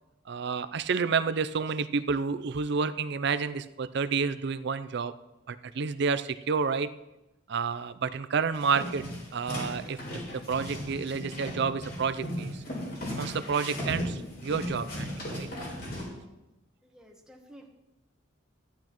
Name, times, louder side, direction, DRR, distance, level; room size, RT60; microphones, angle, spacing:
voice 1, 0.3-5.1 5.5-6.9 7.5-9.0 9.3-12.6 13.2-15.5, right 5 dB, 55° right, 13 dB, 0.4 m, -30 dB
sound 1, 8.5-16.0, equal, 50° left, 3.8 m, -36 dB
voice 2, 16.8-17.7, equal, 5° right, 0 dB, 1.2 m, -52 dB
14.0 x 10.5 x 3.0 m, 0.98 s
head